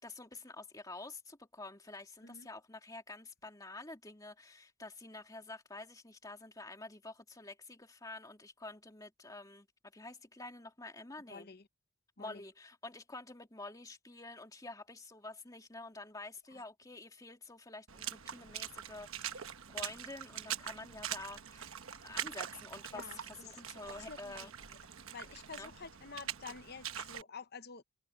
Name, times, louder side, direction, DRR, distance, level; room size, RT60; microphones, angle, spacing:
voice 1, 0.0-9.7 9.9-11.5 12.2-19.4 19.7-21.7 22.0-24.5 25.6-25.7, left 2 dB, 15° left, 2.6 m, -49 dB
voice 2, 11.3-11.6 12.2-12.4 22.9-23.2 23.9-24.5 25.1-27.8, left 5 dB, 50° left, 1.0 m, -49 dB
Water / Splash splatter, 17.9-27.2, right 9 dB, 75° right, 1.2 m, -43 dB
head